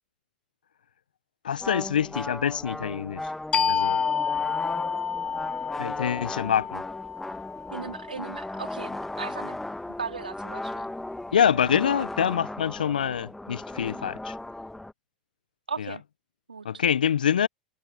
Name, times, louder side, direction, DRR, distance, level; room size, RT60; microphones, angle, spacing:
voice 1, 1.4-3.2 3.7-4.0 5.8-6.8 11.3-14.3 15.8-15.9 16.6-17.5, left 8 dB, 80° left, 0.8 m, -25 dB
sound 1, 1.6-14.9, left 1 dB, 5° left, 1.3 m, -36 dB
sound 2, 3.5-8.8, left 7 dB, 25° left, 1.1 m, -30 dB
voice 2, 7.7-9.6 10.0-10.9 15.7-16.0 16.5-16.8, right 5 dB, 90° right, 3.4 m, -37 dB
hypercardioid pair, 90°, 5 cm